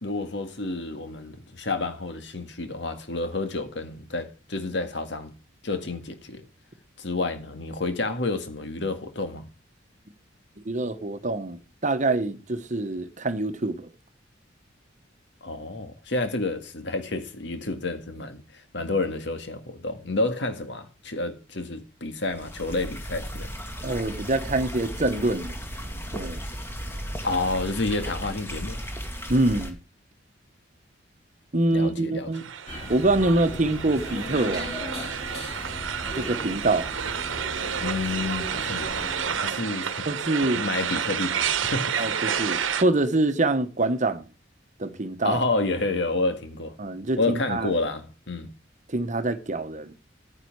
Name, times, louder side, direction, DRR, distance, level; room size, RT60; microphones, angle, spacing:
voice 1, 0.0-5.3 5.6-6.4 7.0-9.5 15.4-23.5 27.2-28.8 31.7-32.3 37.8-39.1 39.4-40.1 40.3-42.1 45.2-46.7 47.2-48.5, left 2 dB, 65° left, 1.9 m, -29 dB
voice 2, 10.6-13.9 23.8-25.6 26.1-26.4 29.3-29.8 31.5-32.4 32.9-34.9 36.1-36.9 39.4-39.8 40.1-40.6 42.0-44.2 44.8-45.4 46.8-47.7 48.9-49.9, right 2 dB, 40° right, 1.2 m, -25 dB
sound 1, 22.3-29.7, equal, 10° left, 2.0 m, -35 dB
sound 2, 32.3-42.8, right 7 dB, 90° right, 1.1 m, -30 dB
sound 3, 32.7-39.4, left 1 dB, 30° left, 3.7 m, -37 dB
10.0 x 9.9 x 4.7 m
head